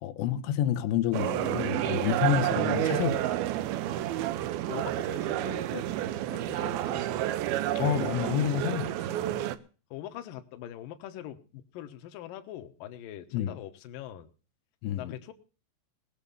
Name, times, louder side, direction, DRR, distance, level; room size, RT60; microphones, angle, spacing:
voice 1, 0.0-3.2 7.8-9.1 13.3-13.6 14.8-15.2, left 10 dB, 85° left, 3.1 m, -29 dB
sound 1, 1.1-9.6, right 13 dB, 75° right, 2.4 m, -30 dB
voice 2, 3.9-4.3 4.7-7.1 9.9-14.3 15.0-15.3, left 12 dB, 65° left, 2.4 m, -43 dB
19.5 x 6.9 x 6.9 m
omnidirectional pair, 5.0 m